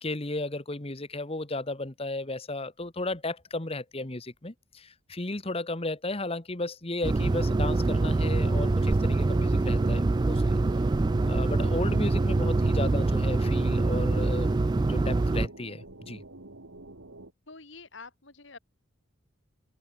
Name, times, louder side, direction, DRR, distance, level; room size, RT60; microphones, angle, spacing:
voice 1, 0.0-10.6 11.3-16.2, left 2 dB, 30° left, 1.4 m, -34 dB
sound 1, 7.0-15.5, right 2 dB, 20° right, 0.3 m, -25 dB
sound 2, 7.2-17.3, right 2 dB, 90° right, 2.6 m, -48 dB
voice 2, 17.5-18.6, left 4 dB, 65° left, 3.1 m, -47 dB
head